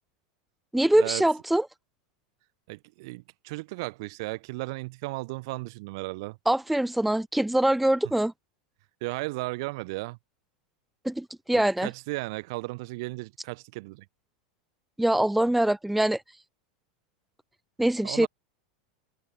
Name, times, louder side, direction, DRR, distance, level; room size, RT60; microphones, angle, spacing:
voice 1, 0.7-1.7 6.5-8.3 11.0-11.9 15.0-16.2 17.8-18.3, right 1 dB, 5° right, 0.4 m, -23 dB
voice 2, 2.7-6.4 9.0-10.2 11.5-14.0 18.0-18.3, right 24 dB, 65° right, 3.0 m, -35 dB
hypercardioid pair, 95°, 3 cm